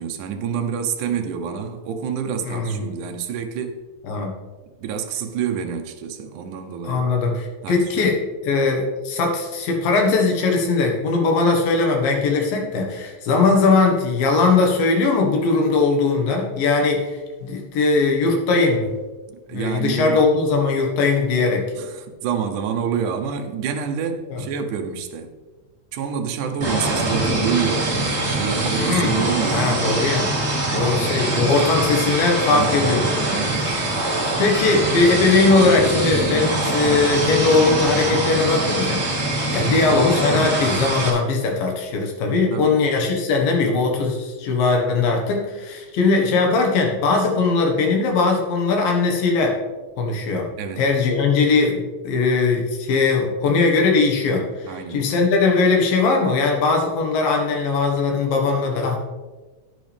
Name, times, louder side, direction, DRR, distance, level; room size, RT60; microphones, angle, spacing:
voice 1, 0.0-3.8 4.8-7.1 7.6-8.1 19.5-20.2 21.8-25.3 25.9-28.0 28.3-30.2 32.4-32.8 33.2-33.7 39.5-39.8 42.5-42.9 50.6-50.9 54.6-55.1, right 7 dB, 70° right, 2.1 m, -27 dB
voice 2, 2.5-2.9 4.1-4.3 6.8-18.9 19.5-21.7 24.3-24.4 28.8-29.2 29.5-30.3 30.7-33.4 34.4-39.0 39.5-49.5 50.0-50.5 50.8-59.0, left 3 dB, 75° left, 3.2 m, -20 dB
sound 1, 26.6-41.1, right 2 dB, 30° right, 1.1 m, -23 dB
10.5 x 9.6 x 3.4 m
omnidirectional pair, 4.2 m